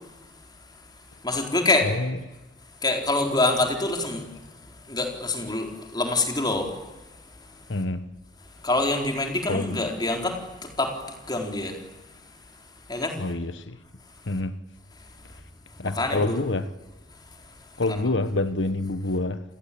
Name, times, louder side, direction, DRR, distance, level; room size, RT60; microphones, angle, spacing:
voice 1, 1.2-1.9 2.8-4.2 4.9-6.7 8.6-10.9 11.3-11.8 12.9-13.2 16.0-16.4 17.9-18.0, left 2 dB, 25° left, 4.3 m, -25 dB
voice 2, 1.8-2.2 7.7-8.1 9.5-9.8 13.2-13.8 14.3-14.5 15.8-16.7 17.8-19.4, left 2 dB, 90° left, 1.2 m, -27 dB
29.5 x 21.0 x 8.6 m
head